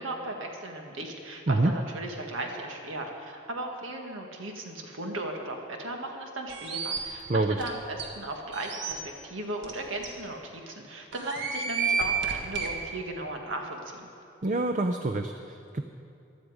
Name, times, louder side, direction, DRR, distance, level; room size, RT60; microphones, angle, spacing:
voice 1, 0.0-14.1, right 2 dB, 85° right, 2 dB, 1.7 m, -36 dB
sound 1, 6.5-7.0 7.6-7.7 8.0-8.1 8.5-8.9 9.6-9.7 10.0-10.1 11.1-12.7, right 5 dB, 60° right, 1.7 m, -30 dB
voice 2, 14.4-15.8, right 2 dB, 40° right, 6 dB, 0.5 m, -26 dB
16.0 x 12.0 x 4.9 m, 2.6 s
head